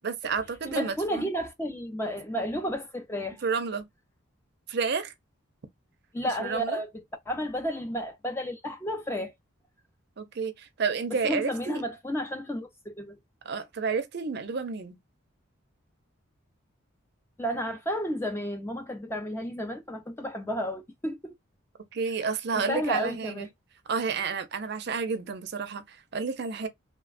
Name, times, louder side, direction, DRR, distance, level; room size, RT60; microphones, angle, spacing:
voice 1, 0.0-1.3 3.4-3.9 4.7-5.1 6.4-6.8 10.2-11.8 13.4-15.0 21.9-23.5 23.9-26.7, right 5 dB, 50° right, 0.5 m, -30 dB
voice 2, 0.7-3.4 6.1-6.9 7.3-9.3 11.2-13.2 17.4-21.3 22.5-23.5, equal, 10° left, 0.4 m, -32 dB
3.1 x 2.1 x 2.4 m
head